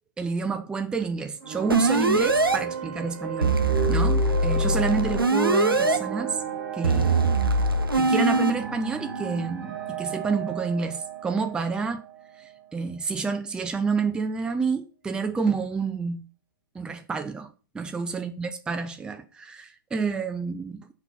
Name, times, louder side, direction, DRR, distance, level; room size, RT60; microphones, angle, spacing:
voice 1, 0.2-3.6 3.9-6.4 6.7-7.3 7.9-12.0 12.4-16.2 16.7-20.9, right 4 dB, 5° right, 0.4 m, -29 dB
sound 1, 1.4-12.7, right 5 dB, 45° right, 1.3 m, -34 dB
sound 2, 1.7-2.6 3.4-6.0 6.8-8.5, right 2 dB, 90° right, 0.6 m, -22 dB
5.7 x 3.0 x 5.6 m
figure-of-eight pair, 110°, 12 cm